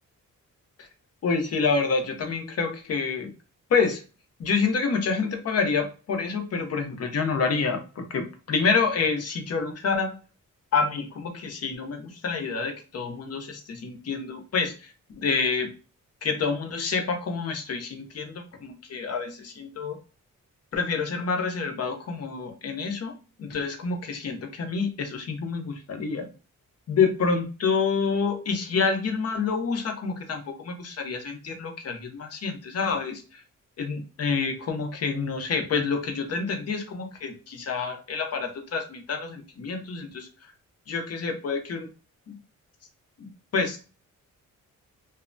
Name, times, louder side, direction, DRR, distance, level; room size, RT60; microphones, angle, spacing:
voice 1, 1.2-3.3 3.7-4.0 4.4-10.2 10.7-14.9 15.2-15.7 16.2-20.0 20.7-23.1 23.4-26.3 26.9-33.4 33.8-40.3 40.9-41.9 42.3-42.4 43.2-43.8, left 5 dB, 50° left, 5 dB, 0.7 m, -28 dB
2.7 x 2.1 x 2.5 m, 0.34 s
cardioid pair, 115°, 31 cm